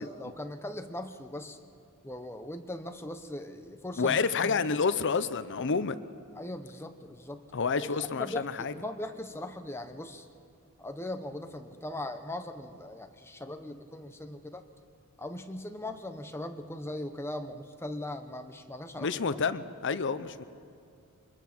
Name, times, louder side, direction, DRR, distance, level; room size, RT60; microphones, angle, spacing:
voice 1, 0.0-1.6 2.0-4.2 4.4-4.6 4.8-5.0 6.3-7.4 7.8-10.3 10.8-14.6 15.2-19.1, left 1 dB, 10° left, 7 dB, 1.0 m, -39 dB
voice 2, 4.0-6.0 7.5-8.7 19.0-20.4, left 5 dB, 55° left, 13 dB, 0.7 m, -29 dB
23.5 x 21.5 x 6.1 m, 2.5 s
head